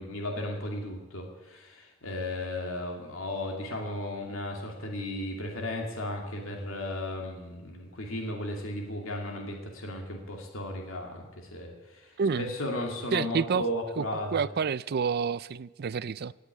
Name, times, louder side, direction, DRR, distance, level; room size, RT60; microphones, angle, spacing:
voice 1, 0.0-14.4, left 1 dB, 70° left, 2.6 m, -35 dB
voice 2, 12.2-12.5 13.1-13.6 14.0-16.3, right 6 dB, 50° right, 0.4 m, -29 dB
17.5 x 8.3 x 9.7 m
head